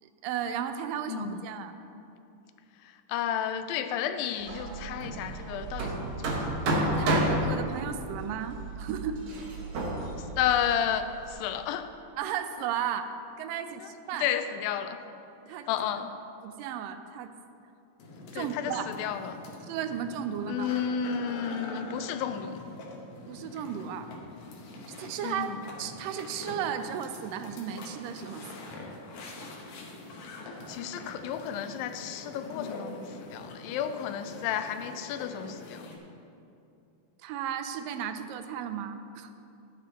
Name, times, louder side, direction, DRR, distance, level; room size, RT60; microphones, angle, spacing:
voice 1, 0.0-1.8 7.0-9.4 12.2-13.1 13.4-14.3 15.5-15.7 16.4-17.3 18.3-19.0 19.7-20.7 23.3-24.1 25.0-28.7 37.2-39.3, right 8 dB, 85° right, 9 dB, 2.2 m, -34 dB
voice 2, 1.1-1.4 3.1-6.5 10.4-11.9 13.6-13.9 14.2-15.0 15.7-16.1 18.3-19.4 20.5-22.6 25.2-25.5 30.7-35.8, left 9 dB, 90° left, 9 dB, 2.3 m, -32 dB
Hammer, 4.4-11.3, right 1 dB, 65° right, 2.3 m, -31 dB
sound 1, 18.0-36.0, left 2 dB, 65° left, 2.2 m, -44 dB
13.5 x 9.5 x 3.0 m, 2.7 s
omnidirectional pair, 4.0 m